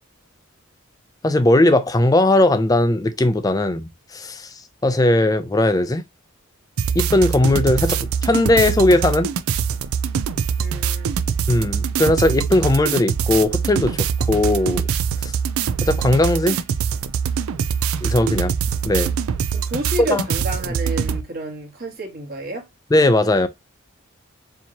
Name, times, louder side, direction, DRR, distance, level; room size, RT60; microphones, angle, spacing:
voice 1, 1.2-4.5 4.8-6.0 6.9-9.3 11.5-14.8 15.2-15.3 15.8-16.6 18.0-18.5 18.8-19.1 20.0-20.2 22.9-23.5, left 1 dB, 15° left, 0.4 m, -18 dB
sound 1, 6.8-21.2, right 7 dB, 85° right, 0.4 m, -23 dB
voice 2, 10.6-11.2 19.5-22.7, right 1 dB, 45° right, 1.3 m, -30 dB
4.5 x 2.8 x 2.8 m
head